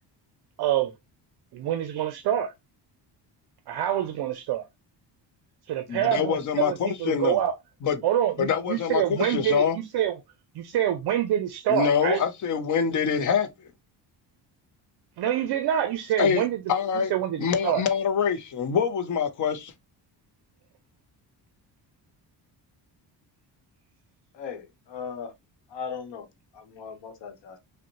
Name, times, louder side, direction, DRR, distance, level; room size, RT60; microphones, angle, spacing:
voice 1, 0.6-0.9 1.5-2.5 3.7-4.7 5.7-7.6 8.0-10.1 10.6-12.2 15.2-16.6 17.1-17.8, right 11 dB, 60° right, 0.5 m, -26 dB
voice 2, 5.9-7.4 7.8-8.0 8.4-9.8 11.7-13.5 16.2-16.4 16.7-17.1 17.4-19.7, left 7 dB, 45° left, 0.5 m, -25 dB
voice 3, 24.3-25.3 25.7-26.3 26.5-27.6, left 6 dB, 75° left, 1.0 m, -38 dB
5.1 x 2.1 x 2.8 m
cardioid pair, 175°, 44 cm